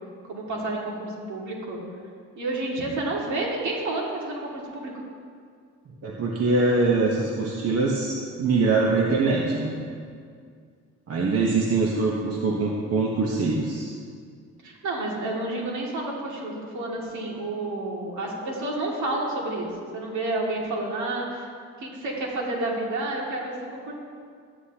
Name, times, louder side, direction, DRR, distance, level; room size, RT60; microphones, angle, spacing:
voice 1, 0.3-1.8 2.4-4.9 14.6-19.7 19.9-21.5 21.8-23.9, right 2 dB, 70° right, -2 dB, 2.3 m, -30 dB
voice 2, 6.0-9.8 11.1-13.9, right 3 dB, 50° right, -2 dB, 1.2 m, -23 dB
13.5 x 9.7 x 2.9 m, 2.1 s
cardioid pair, 90°, 30 cm